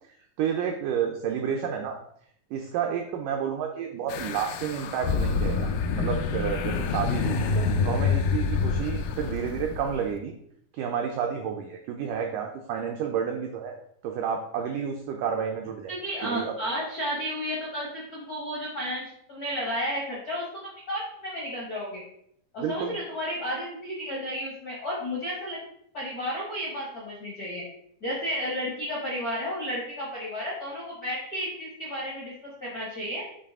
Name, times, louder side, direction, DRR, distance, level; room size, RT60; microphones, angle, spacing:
voice 1, 0.4-2.0 2.5-7.4 7.8-10.3 10.8-13.8 14.0-15.9 16.2-16.5 22.6-23.0, right 7 dB, 85° right, 3 dB, 1.8 m, -30 dB
sound 1, 4.1-10.1, left 5 dB, 85° left, 1.9 m, -27 dB
voice 2, 7.4-7.7 15.9-22.0 22.5-25.6 25.9-27.6 28.0-33.2, equal, 70° left, -5 dB, 0.8 m, -32 dB
8.1 x 3.3 x 3.6 m, 0.69 s
omnidirectional pair, 4.4 m